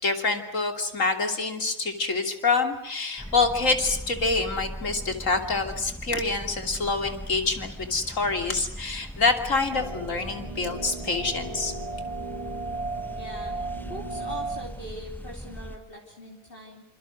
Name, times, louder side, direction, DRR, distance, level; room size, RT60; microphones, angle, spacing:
voice 1, 0.0-11.7, left 3 dB, 65° left, 5 dB, 3.3 m, -26 dB
sound 1, 3.2-15.8, equal, ahead, 1.1 m, -40 dB
sound 2, 9.7-14.7, right 3 dB, 25° right, 3.1 m, -35 dB
voice 2, 13.2-13.5 13.9-16.8, equal, 40° left, -1 dB, 3.4 m, -41 dB
28.0 x 27.0 x 6.3 m, 0.77 s
omnidirectional pair, 1.4 m